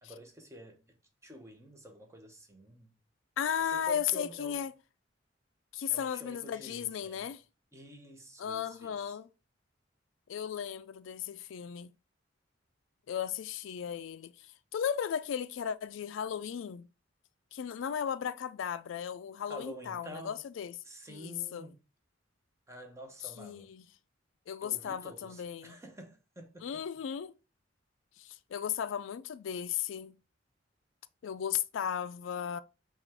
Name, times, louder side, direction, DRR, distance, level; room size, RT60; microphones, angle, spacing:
voice 1, 0.0-1.0 1.2-2.9 3.6-4.6 5.9-7.3 7.7-9.2 19.5-20.4 20.8-21.8 22.7-23.7 24.6-26.8, equal, 15° right, 0.8 m, -49 dB
voice 2, 3.4-4.7 5.7-7.4 8.4-9.3 10.3-11.9 13.1-14.3 14.7-16.9 17.5-20.8 21.1-21.7 23.4-23.8 24.5-25.8 26.6-27.3 28.2-30.1 31.2-32.6, left 8 dB, 80° left, 0.3 m, -35 dB
5.9 x 2.4 x 3.3 m
head